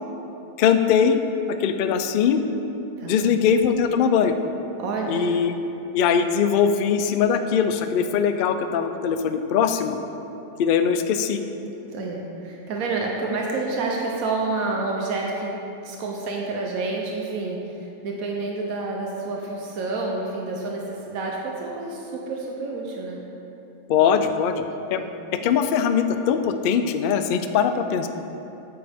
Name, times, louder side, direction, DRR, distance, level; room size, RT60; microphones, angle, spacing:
voice 1, 0.6-1.2 1.5-2.4 3.0-4.4 5.1-5.5 5.9-10.0 10.6-11.4 23.9-24.6 24.9-25.0 25.4-28.1, left 7 dB, 75° left, 8 dB, 0.5 m, -21 dB
voice 2, 3.0-3.3 4.8-5.3 11.9-15.5 15.8-23.2 24.9-25.1, right 3 dB, 85° right, -1 dB, 1.2 m, -29 dB
8.8 x 7.9 x 3.5 m, 2.9 s
omnidirectional pair, 1.4 m